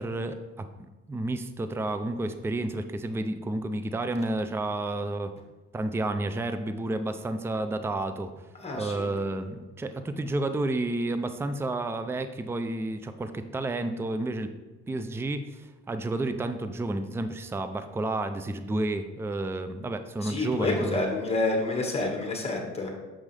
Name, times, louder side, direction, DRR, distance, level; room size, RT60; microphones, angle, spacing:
voice 1, 0.0-5.3 5.7-8.3 8.7-14.5 14.9-21.0, right 2 dB, 10° right, 9 dB, 0.4 m, -31 dB
voice 2, 8.6-9.1 20.2-22.9, left 2 dB, 20° left, 1 dB, 1.6 m, -28 dB
7.3 x 5.2 x 3.3 m, 1.1 s
cardioid pair, 90°, 30 cm